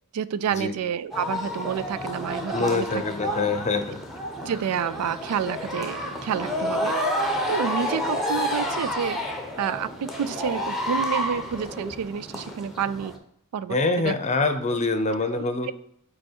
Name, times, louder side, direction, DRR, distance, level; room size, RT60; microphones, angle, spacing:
voice 1, 0.1-3.0 4.4-6.9 7.5-9.2 9.6-13.1 13.5-14.1 15.3-15.7, right 8 dB, 85° right, 16 dB, 0.4 m, -29 dB
sound 1, 1.1-13.2, equal, ahead, 0.8 m, -30 dB
voice 2, 2.5-4.0 13.7-15.7, left 3 dB, 30° left, 8 dB, 0.6 m, -25 dB
5.4 x 4.2 x 4.5 m, 0.72 s
head